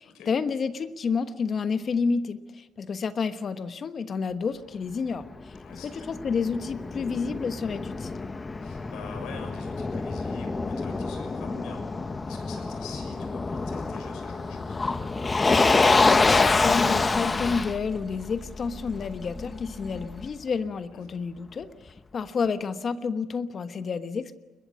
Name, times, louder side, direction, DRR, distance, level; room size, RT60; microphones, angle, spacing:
voice 1, 0.0-5.5 6.1-8.3 15.7-24.3, left 5 dB, 45° left, 10 dB, 1.2 m, -30 dB
Motor vehicle (road), 5.2-20.3, left 3 dB, 25° left, 1.0 m, -27 dB
voice 2, 5.6-6.1 8.6-14.8 20.9-21.2, left 5 dB, 85° left, 5 dB, 6.6 m, -45 dB
21.5 x 21.0 x 8.4 m, 1.2 s
cardioid pair, 100°, 0 cm